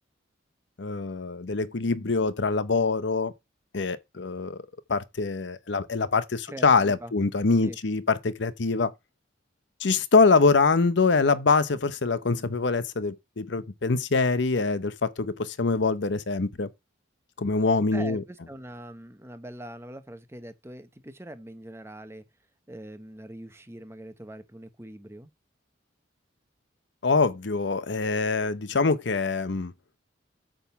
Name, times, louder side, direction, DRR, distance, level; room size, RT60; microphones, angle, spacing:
voice 1, 0.8-3.3 3.7-4.6 4.9-8.9 9.8-16.7 17.4-18.2 27.0-29.7, left 4 dB, 65° left, 0.7 m, -24 dB
voice 2, 6.5-7.1 7.6-7.8 17.9-22.2 22.7-25.3, right 1 dB, 15° right, 0.9 m, -42 dB
8.8 x 3.6 x 6.9 m
head